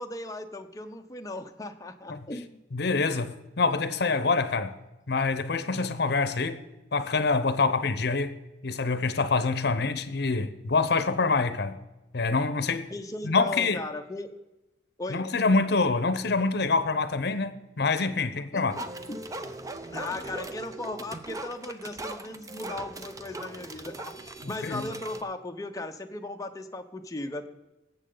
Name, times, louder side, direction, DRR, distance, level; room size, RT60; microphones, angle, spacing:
voice 1, 0.0-2.6 12.9-14.3 15.0-15.3 18.3-19.3 19.9-27.5, left 2 dB, 20° left, 0.7 m, -37 dB
voice 2, 2.7-4.7 5.1-6.6 6.9-8.4 8.6-11.8 12.1-12.9 13.2-13.8 15.1-18.8 24.4-24.9, left 4 dB, 60° left, 0.8 m, -26 dB
sound 1, 18.7-25.2, right 2 dB, 20° right, 0.6 m, -40 dB
18.0 x 7.6 x 3.9 m
head